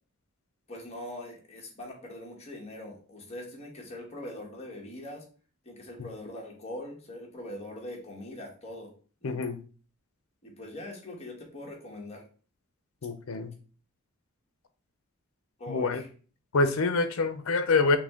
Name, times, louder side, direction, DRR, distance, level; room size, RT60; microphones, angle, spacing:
voice 1, 0.7-5.2 5.6-8.9 9.2-9.4 10.4-12.2 15.6-16.1, left 1 dB, 30° left, 1.3 m, -42 dB
voice 2, 9.2-9.6 13.0-13.5 15.7-16.0 16.5-18.0, left 3 dB, 75° left, 0.6 m, -26 dB
6.0 x 2.2 x 3.6 m
head